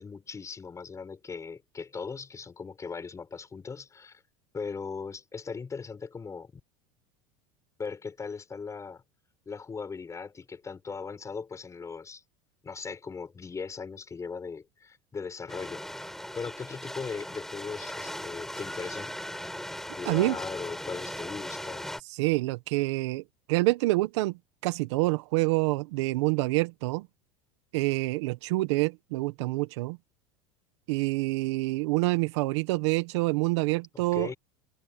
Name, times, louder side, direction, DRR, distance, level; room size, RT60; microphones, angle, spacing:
voice 1, 0.0-4.2 4.5-6.5 7.8-9.0 9.5-12.2 12.6-19.1 19.9-22.0 34.1-34.4, left 5 dB, 20° left, 6.4 m, -39 dB
sound 1, 15.5-22.0, left 1 dB, ahead, 6.9 m, -38 dB
voice 2, 20.0-20.4 22.2-23.2 23.5-24.4 24.6-27.1 27.7-30.0 30.9-34.3, right 21 dB, 80° right, 1.3 m, -27 dB
supercardioid pair, 115°, 15 cm